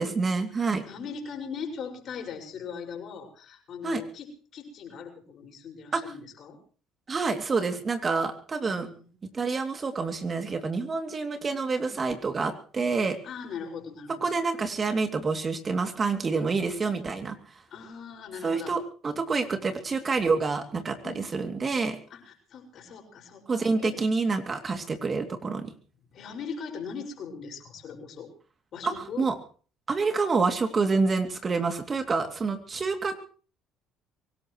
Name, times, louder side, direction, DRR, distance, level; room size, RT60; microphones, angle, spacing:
voice 1, 0.0-0.8 3.8-4.0 5.9-6.0 7.1-8.9 9.3-13.2 14.2-17.4 18.4-22.0 23.5-25.7 28.8-29.3 29.9-33.2, right 4 dB, 35° right, 6 dB, 2.7 m, -27 dB
voice 2, 0.5-6.6 8.7-9.1 13.2-14.4 17.7-18.8 19.4-19.6 21.0-21.2 22.1-24.0 26.1-28.3 28.7-29.3, left 6 dB, 55° left, 2 dB, 5.8 m, -40 dB
24.0 x 18.0 x 3.2 m, 0.41 s
hypercardioid pair, 60°, 0 cm